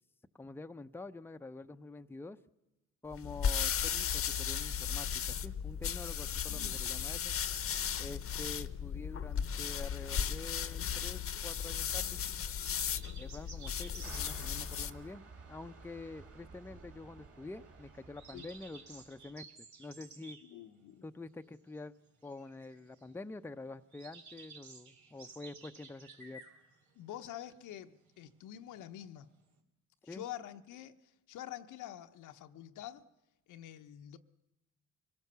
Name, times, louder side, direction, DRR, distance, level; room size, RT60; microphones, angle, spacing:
voice 1, 0.4-2.4 3.0-7.4 8.0-12.2 13.1-20.4 21.0-21.9 22.2-26.4 30.1-30.2, left 3 dB, 5° left, 0.6 m, -47 dB
sound 1, 3.1-15.0, left 8 dB, 45° left, 0.9 m, -36 dB
voice 2, 6.5-6.8 18.3-18.5 20.4-21.1 26.9-29.3 30.0-33.0 33.5-34.2, left 11 dB, 90° left, 1.0 m, -47 dB
sound 2, 10.9-29.6, right 4 dB, 70° right, 2.8 m, -55 dB
sound 3, 14.0-19.4, right 4 dB, 50° right, 2.8 m, -53 dB
25.0 x 17.5 x 6.8 m
cardioid pair, 90°, 30 cm